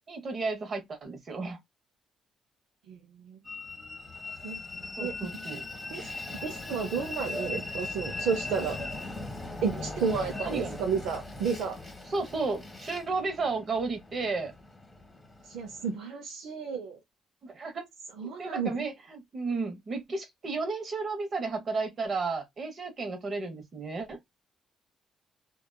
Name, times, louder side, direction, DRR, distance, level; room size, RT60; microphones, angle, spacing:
voice 1, 0.1-1.6 5.0-5.6 10.4-10.8 12.1-14.5 17.4-17.9 18.4-24.2, right 3 dB, 50° right, 1.0 m, -33 dB
voice 2, 2.9-3.4 4.4-4.6 5.0-5.1 5.9-8.8 9.6-11.8 15.5-17.0 18.2-18.8, right 6 dB, 90° right, 0.5 m, -32 dB
Train, 3.4-15.9, left 2 dB, 15° left, 1.2 m, -39 dB
2.8 x 2.3 x 2.2 m
cardioid pair, 90°, 0 cm